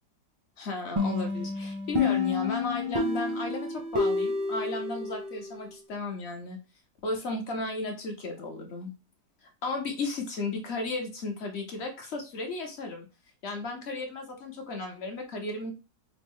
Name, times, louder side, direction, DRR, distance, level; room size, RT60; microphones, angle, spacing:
voice 1, 0.6-6.6 7.0-8.9 9.4-13.1 13.4-15.7, left 3 dB, 55° left, 3 dB, 0.8 m, -34 dB
sound 1, 1.0-5.6, left 3 dB, 35° right, 0.5 m, -29 dB
4.9 x 2.0 x 3.6 m, 0.31 s
omnidirectional pair, 1.8 m